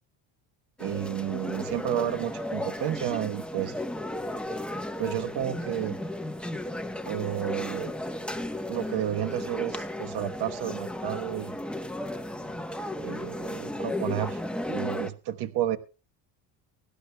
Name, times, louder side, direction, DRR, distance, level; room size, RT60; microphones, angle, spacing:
sound 1, 0.8-15.1, left 1 dB, ahead, 0.9 m, -34 dB
voice 1, 0.8-3.8 5.0-6.0 7.0-7.9 8.7-11.6 13.0-14.4 14.7-15.8, right 11 dB, 60° right, 10 dB, 1.1 m, -31 dB
23.0 x 12.0 x 2.2 m, 0.33 s
cardioid pair, 130°, 44 cm